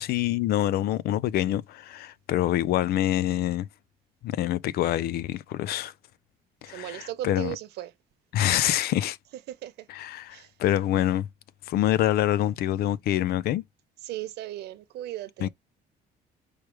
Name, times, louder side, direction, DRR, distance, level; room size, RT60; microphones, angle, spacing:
voice 1, 0.0-3.7 4.2-5.9 6.6-7.5 8.3-9.2 9.9-11.3 11.7-13.6 15.4-15.5, left 13 dB, 70° left, 0.4 m, -26 dB
voice 2, 6.7-7.9 9.5-9.9 10.3-10.5 14.0-15.5, right 14 dB, 80° right, 0.9 m, -37 dB
4.7 x 3.3 x 3.1 m
cardioid pair, 110°, 17 cm